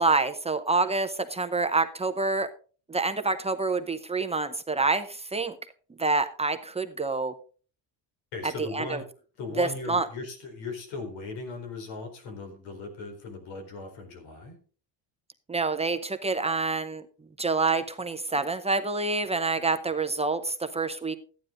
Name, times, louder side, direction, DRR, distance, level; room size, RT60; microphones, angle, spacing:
voice 1, 0.0-2.5 2.9-5.6 6.0-7.3 8.6-9.0 9.6-10.1 15.5-17.0 17.4-21.2, right 3 dB, 15° right, 8 dB, 0.7 m, -27 dB
voice 2, 8.3-9.1 9.4-14.6, left 3 dB, 90° left, 5 dB, 4.4 m, -38 dB
14.0 x 9.4 x 3.8 m, 0.39 s
cardioid pair, 155°, 44 cm